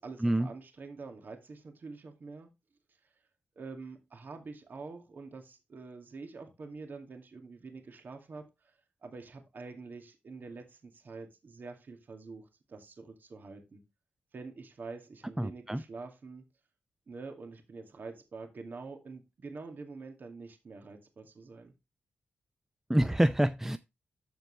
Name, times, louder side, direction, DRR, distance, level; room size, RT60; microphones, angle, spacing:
voice 1, 0.0-2.5 3.6-8.5 9.0-13.8 14.3-16.5 17.1-21.7, right 4 dB, 60° right, 2.3 m, -46 dB
voice 2, 15.4-15.8 22.9-23.8, right 1 dB, 10° right, 0.5 m, -26 dB
13.0 x 4.5 x 3.3 m
cardioid pair, 55°, 4 cm